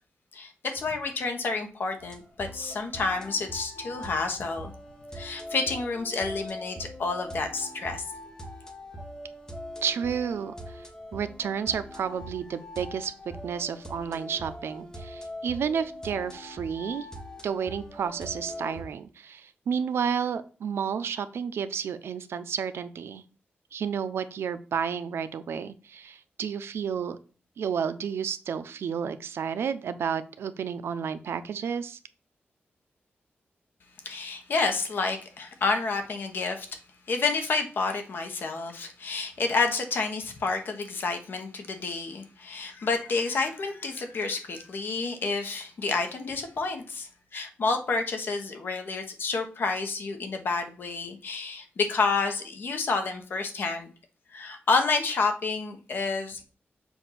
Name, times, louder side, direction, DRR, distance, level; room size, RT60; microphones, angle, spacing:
voice 1, 0.3-4.7 5.1-8.0 34.0-36.7 37.1-53.9 54.3-56.4, left 4 dB, 60° left, 5 dB, 1.0 m, -29 dB
sound 1, 2.0-18.8, left 1 dB, 15° left, 0.9 m, -42 dB
voice 2, 9.8-10.9 11.1-13.1 13.4-17.1 17.4-23.2 23.7-27.2 27.6-32.0, right 7 dB, 80° right, 12 dB, 0.5 m, -31 dB
7.1 x 2.5 x 5.7 m, 0.38 s
wide cardioid pair, 160°, 4 cm